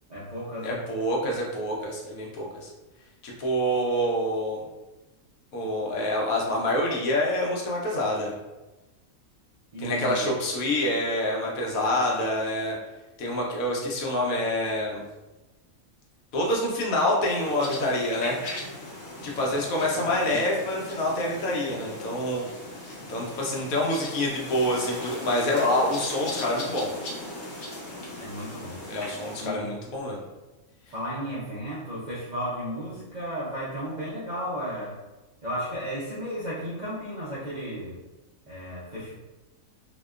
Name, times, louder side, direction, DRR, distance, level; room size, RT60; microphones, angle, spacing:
voice 1, 0.1-0.8 9.7-10.4 20.1-20.4 28.2-28.8 29.4-29.7 30.9-35.0 35.4-38.0 38.5-39.1, equal, 65° right, -9 dB, 0.4 m, -34 dB
voice 2, 0.6-2.7 3.2-4.6 5.5-8.3 9.8-12.8 13.2-15.0 16.3-18.4 19.2-22.5 23.1-26.9 28.9-30.2, left 1 dB, 90° left, -2 dB, 1.1 m, -26 dB
sound 1, 17.2-29.5, left 1 dB, 60° left, 0.8 m, -38 dB
2.8 x 2.1 x 2.3 m, 1.1 s
omnidirectional pair, 1.4 m